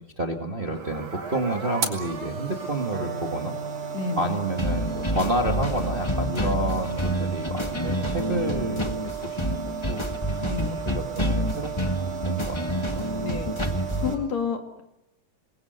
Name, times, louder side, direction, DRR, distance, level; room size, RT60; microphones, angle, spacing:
voice 1, 0.2-3.5 4.2-8.9 9.2-10.5 10.8-11.7 12.2-13.0, right 1 dB, 20° right, 4 dB, 1.6 m, -30 dB
sound 1, 0.6-14.1, right 8 dB, 85° right, 5.0 m, -35 dB
Electric guitar, 2.9-10.8, right 1 dB, 65° right, 5.1 m, -43 dB
voice 2, 3.9-4.4 8.3-8.6 10.4-10.8 13.2-14.8, left 5 dB, 65° left, 6 dB, 3.3 m, -31 dB
sound 2, 4.6-14.2, left 1 dB, 20° left, 0.8 m, -28 dB
28.5 x 21.0 x 8.0 m, 0.89 s
omnidirectional pair, 3.4 m